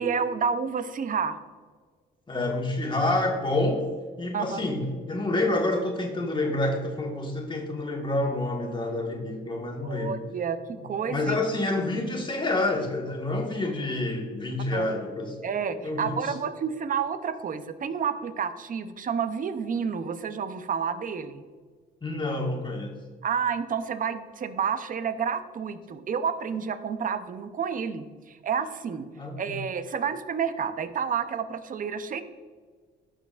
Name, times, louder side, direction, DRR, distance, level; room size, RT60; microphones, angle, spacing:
voice 1, 0.0-1.4 4.3-4.7 9.8-11.4 14.7-14.9 15.4-21.4 23.2-29.1 29.4-32.2, right 6 dB, 45° right, 11 dB, 0.6 m, -30 dB
voice 2, 2.3-3.8 4.2-10.1 11.0-15.3 15.8-16.3 22.0-22.9 29.2-29.5, left 2 dB, 25° left, 0 dB, 1.5 m, -28 dB
12.0 x 6.1 x 2.5 m, 1.5 s
cardioid pair, 90°, 20 cm